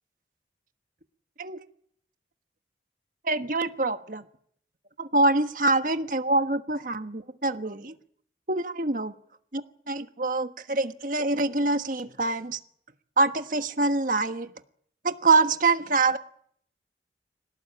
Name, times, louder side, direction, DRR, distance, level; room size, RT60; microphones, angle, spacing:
voice 1, 3.2-4.2 5.0-7.9 8.5-9.1 9.5-9.6 9.9-12.6 13.2-14.5 15.0-16.2, right 3 dB, 50° right, 8 dB, 1.4 m, -25 dB
26.0 x 18.0 x 8.7 m, 0.65 s
head